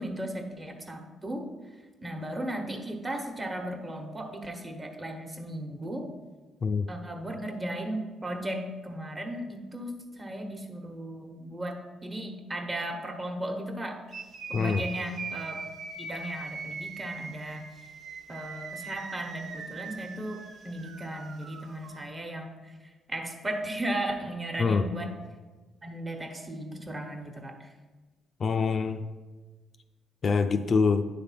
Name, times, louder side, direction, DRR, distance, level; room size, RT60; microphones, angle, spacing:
voice 1, 0.0-1.5 2.0-6.1 6.9-14.0 14.5-15.6 16.0-17.6 18.3-25.1 25.8-27.7, right 1 dB, 25° right, 3 dB, 1.2 m, -36 dB
sound 1, 14.1-22.0, right 4 dB, 65° right, 0.9 m, -41 dB
voice 2, 28.4-29.0 30.2-31.0, left 5 dB, 45° left, 8 dB, 0.4 m, -25 dB
9.7 x 3.5 x 5.7 m, 1.3 s
cardioid pair, 90°, 0 cm